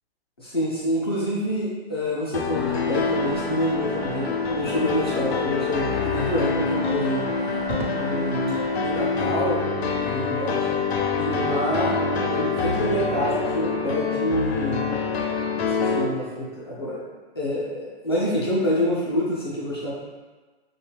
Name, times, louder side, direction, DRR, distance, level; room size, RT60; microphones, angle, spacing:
voice 1, 0.4-7.3 7.9-9.6 10.1-10.6 11.2-12.0 12.2-14.9 15.6-17.0 17.4-19.9, equal, 25° left, -7 dB, 0.4 m, -27 dB
sound 1, 2.3-16.1, left 4 dB, 85° left, 0.5 m, -26 dB
sound 2, 2.6-9.3, right 2 dB, 40° right, 0.5 m, -40 dB
Crackle, 7.6-8.8 10.4-10.9, right 2 dB, 70° right, 0.7 m, -36 dB
2.7 x 2.2 x 3.2 m, 1.3 s
hypercardioid pair, 165°, 31 cm